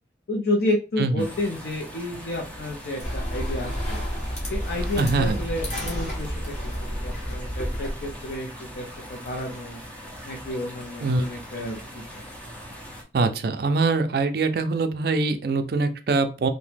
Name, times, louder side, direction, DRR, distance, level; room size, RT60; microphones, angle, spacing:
voice 1, 0.3-4.0 4.5-6.7 7.0-9.8 10.2-12.2, left 1 dB, 60° left, 0 dB, 0.5 m, -30 dB
sound 1, 1.2-13.0, equal, 5° left, 0.5 m, -41 dB
sound 2, 3.0-8.4, equal, 40° left, 0.9 m, -30 dB
voice 2, 5.0-5.4 11.0-11.2 13.1-16.5, right 3 dB, 55° right, 9 dB, 0.4 m, -23 dB
2.8 x 2.1 x 3.3 m, 0.34 s
head